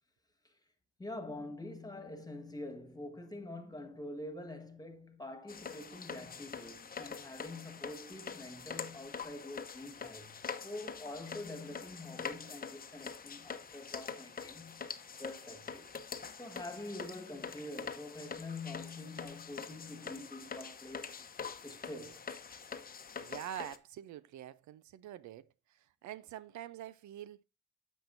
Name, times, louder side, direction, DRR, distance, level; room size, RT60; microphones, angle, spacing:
voice 1, 1.0-10.4 10.6-14.9 15.2-15.9 16.4-21.2 21.6-22.3, left 2 dB, 10° left, 1.6 m, -46 dB
sound 1, 5.5-23.8, left 6 dB, 30° left, 0.8 m, -45 dB
voice 2, 23.2-27.4, right 11 dB, 70° right, 0.5 m, -46 dB
10.0 x 7.2 x 2.6 m
cardioid pair, 90°, 30 cm